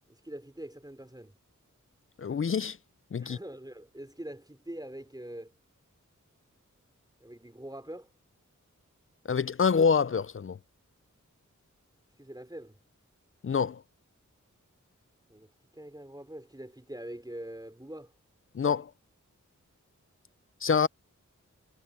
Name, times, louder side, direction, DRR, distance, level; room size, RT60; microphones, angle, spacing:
voice 1, 0.1-1.3 3.2-5.5 7.2-8.1 12.2-12.8 15.3-18.1, right 1 dB, 15° right, 4.7 m, -44 dB
voice 2, 2.2-2.8 3.1-3.4 9.3-10.6 13.4-13.8 18.5-18.9 20.6-20.9, left 6 dB, 45° left, 0.4 m, -26 dB
wide cardioid pair, 65°, 31 cm